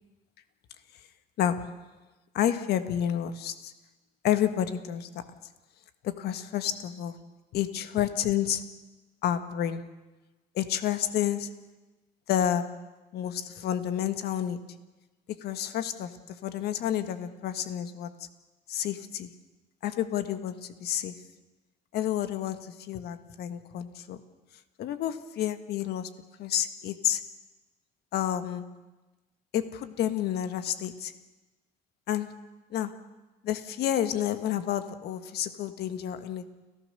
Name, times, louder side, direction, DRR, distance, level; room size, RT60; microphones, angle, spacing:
voice 1, 1.4-1.7 2.3-3.7 4.2-5.3 6.0-7.2 7.5-8.7 9.2-9.9 10.5-11.6 12.3-12.8 13.1-14.7 15.4-18.3 18.7-19.3 19.8-21.2 21.9-24.2 24.8-27.3 28.1-28.7 29.5-31.1 32.1-33.0 33.4-36.4, left 10 dB, 70° left, 1.6 m, -30 dB
30.0 x 14.0 x 6.8 m
cardioid pair, 110°, 17 cm